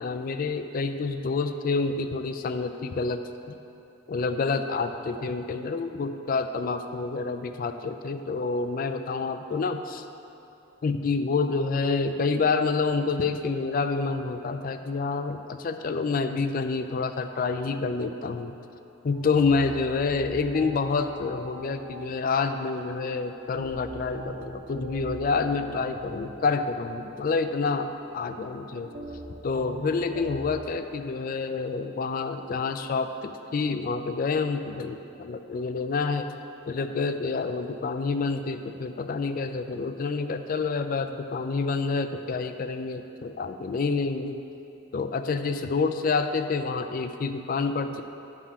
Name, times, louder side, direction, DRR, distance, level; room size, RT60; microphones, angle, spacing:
voice 1, 0.0-3.2 3.5-3.6 4.1-9.8 10.8-18.6 19.0-27.9 28.1-28.9 29.4-36.3 36.7-44.4 44.9-48.0, left 4 dB, 45° left, 8 dB, 0.3 m, -28 dB
sound 1, 19.1-30.7, right 1 dB, 40° right, 0.8 m, -42 dB
9.8 x 3.6 x 5.7 m, 2.8 s
head